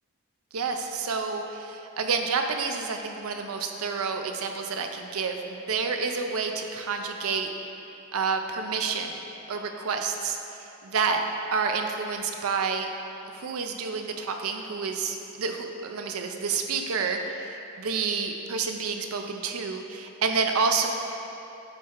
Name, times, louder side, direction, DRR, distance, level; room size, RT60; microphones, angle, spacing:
voice 1, 0.5-7.5 8.1-9.2 9.5-10.4 10.8-11.2 11.5-12.9 13.3-20.9, right 5 dB, 75° right, 5 dB, 0.5 m, -29 dB
8.6 x 3.2 x 3.7 m, 2.8 s
head